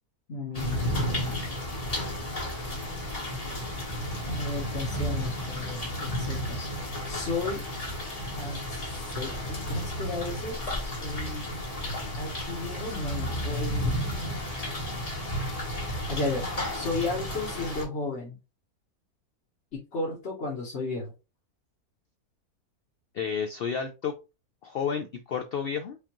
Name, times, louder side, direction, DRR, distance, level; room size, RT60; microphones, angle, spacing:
voice 1, 0.3-1.3 4.2-6.7 7.1-7.6 8.4-8.8 9.1-10.6 10.8-11.5 12.2-13.9 16.1-16.5 16.7-18.4 19.9-21.1, left 3 dB, 50° left, -5 dB, 1.2 m, -33 dB
sound 1, 0.5-17.8, equal, 30° left, 1.0 m, -32 dB
voice 2, 23.1-24.1 24.6-26.0, left 6 dB, 90° left, 6 dB, 0.5 m, -31 dB
5.1 x 2.5 x 2.9 m, 0.28 s
omnidirectional pair, 1.6 m